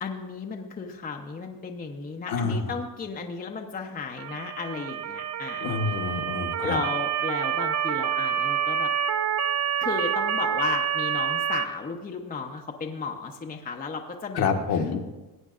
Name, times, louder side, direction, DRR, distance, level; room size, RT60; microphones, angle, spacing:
voice 1, 0.0-5.9 6.6-8.9 9.8-14.6, left 4 dB, 20° left, 3 dB, 0.8 m, -34 dB
voice 2, 2.3-2.7 5.6-6.8 14.3-15.0, left 5 dB, 50° left, 3 dB, 1.2 m, -27 dB
Motor vehicle (road) / Siren, 4.2-11.7, right 8 dB, 35° right, 0.6 m, -27 dB
17.5 x 8.2 x 2.5 m, 1.1 s
supercardioid pair, 90°, 48 cm